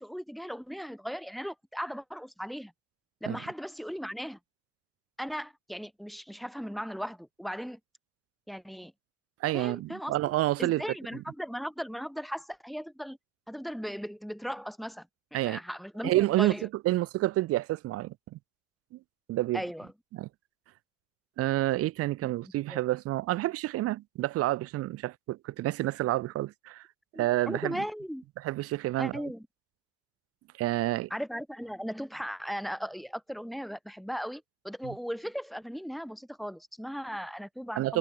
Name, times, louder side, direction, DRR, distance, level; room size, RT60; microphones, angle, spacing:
voice 1, 0.0-2.7 3.2-4.4 5.2-7.8 8.5-8.9 9.5-10.1 10.6-13.2 13.5-15.1 15.3-16.7 19.5-19.9 22.4-22.8 27.1-28.2 29.0-29.5 31.1-38.0, equal, ahead, 2.0 m, -37 dB
voice 2, 9.4-10.8 15.3-15.6 16.0-16.5 16.8-18.4 19.3-19.6 20.1-20.3 21.4-26.9 27.2-27.8 28.4-29.1 30.6-31.1 34.8-34.9 37.8-38.0, right 16 dB, 45° right, 2.4 m, -29 dB
cardioid pair, 155°, 33 cm